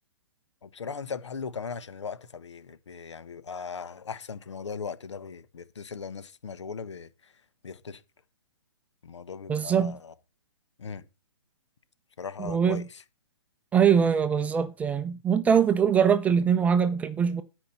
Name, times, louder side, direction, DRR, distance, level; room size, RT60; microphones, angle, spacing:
voice 1, 0.6-7.3 7.6-8.0 9.0-10.1 10.8-11.0 12.2-13.0, left 5 dB, 75° left, 1.3 m, -38 dB
voice 2, 9.5-10.0 12.4-12.8 13.7-17.4, right 7 dB, 10° right, 0.5 m, -23 dB
12.5 x 5.3 x 5.8 m
hypercardioid pair, 140°, 15 cm